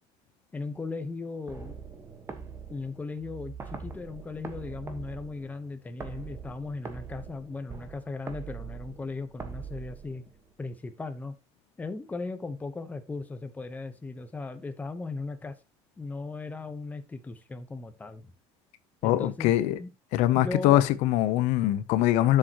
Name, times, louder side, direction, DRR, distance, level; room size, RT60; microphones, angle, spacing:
voice 1, 0.5-1.8 2.7-10.2 10.6-11.4 11.8-15.6 16.0-18.3 19.0-19.5 19.8-19.9 20.3-20.9, left 3 dB, 15° left, 1.0 m, -37 dB
sound 1, 1.5-10.5, right 5 dB, 25° right, 1.4 m, -43 dB
voice 2, 19.0-19.8 20.1-22.4, left 14 dB, 80° left, 0.8 m, -23 dB
11.5 x 6.9 x 3.0 m
cardioid pair, 150°, 12 cm